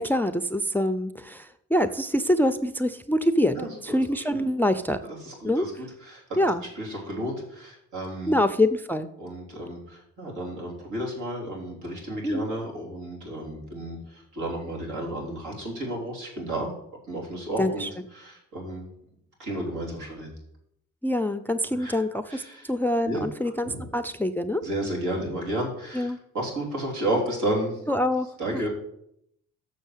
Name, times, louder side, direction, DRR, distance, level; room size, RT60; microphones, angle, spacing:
voice 1, 0.0-5.0 5.4-5.7 6.4-6.6 8.3-9.1 12.2-12.5 17.6-17.9 21.0-24.6 25.9-26.2 27.9-28.7, left 1 dB, 5° left, 10 dB, 0.4 m, -25 dB
voice 2, 3.5-4.4 5.2-6.2 6.7-8.4 9.2-16.7 17.1-17.9 18.1-18.9 19.4-20.3 21.8-22.0 22.3-22.7 23.0-23.3 23.6-23.9 24.6-27.8 28.4-28.7, right 1 dB, 80° right, -2 dB, 3.4 m, -32 dB
6.8 x 6.5 x 7.3 m, 0.75 s
cardioid pair, 90°, 30 cm